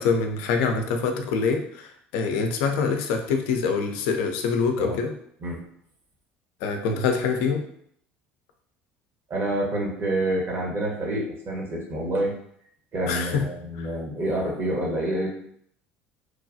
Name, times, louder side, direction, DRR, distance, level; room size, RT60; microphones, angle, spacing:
voice 1, 0.0-5.1 6.6-7.6 13.1-13.4 13.8-13.9, left 5 dB, 65° left, 4 dB, 0.4 m, -25 dB
voice 2, 9.3-12.4 12.9-15.3, right 1 dB, 40° right, -2 dB, 1.0 m, -27 dB
3.0 x 2.3 x 2.6 m, 0.67 s
hypercardioid pair, 70°, 6 cm